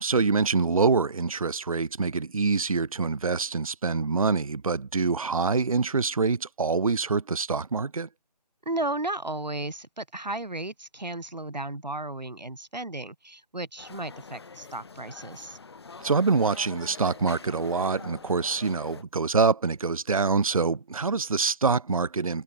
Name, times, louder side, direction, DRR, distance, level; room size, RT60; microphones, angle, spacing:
voice 1, 0.0-8.1 16.0-22.4, right 4 dB, 55° right, 0.6 m, -25 dB
voice 2, 8.6-15.6, right 2 dB, 85° right, 1.3 m, -34 dB
sound 1, 13.8-19.0, left 4 dB, 40° left, 4.6 m, -45 dB
figure-of-eight pair, 160°, 21 cm